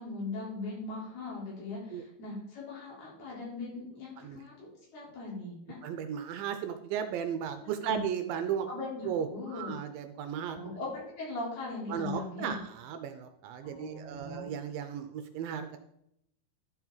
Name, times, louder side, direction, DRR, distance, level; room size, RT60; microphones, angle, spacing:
voice 1, 0.0-4.7 4.9-5.8 7.8-8.1 8.7-9.7 10.5-12.6 13.6-14.4, left 3 dB, 80° left, -5 dB, 6.1 m, -39 dB
voice 2, 5.8-8.7 9.1-10.6 11.9-15.8, right 8 dB, 75° right, 8 dB, 2.2 m, -35 dB
11.5 x 7.4 x 4.0 m, 0.76 s
omnidirectional pair, 4.4 m